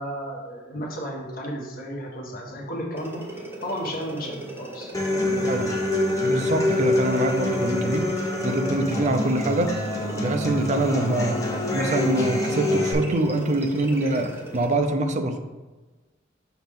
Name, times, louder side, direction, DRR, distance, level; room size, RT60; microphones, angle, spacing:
voice 1, 0.0-4.9 5.2-5.6, equal, 50° left, -2 dB, 1.3 m, -33 dB
sound 1, 3.0-14.8, right 1 dB, 10° right, 0.8 m, -39 dB
Human voice / Acoustic guitar, 4.9-12.9, left 1 dB, 15° left, 0.9 m, -25 dB
voice 2, 6.2-9.8 10.2-11.4 11.7-15.4, right 1 dB, 40° right, 6 dB, 0.5 m, -24 dB
6.0 x 5.0 x 3.6 m, 1.2 s
head